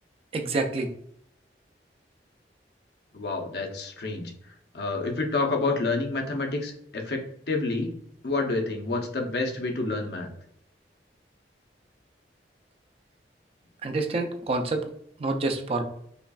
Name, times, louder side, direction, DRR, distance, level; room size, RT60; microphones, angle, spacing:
voice 1, 0.3-0.9 13.8-14.9 15.2-15.8, right 2 dB, 35° right, 5 dB, 0.4 m, -27 dB
voice 2, 3.1-4.3 4.7-7.9 8.2-10.3, left 3 dB, 65° left, 2 dB, 0.7 m, -28 dB
5.3 x 2.4 x 2.3 m, 0.70 s
head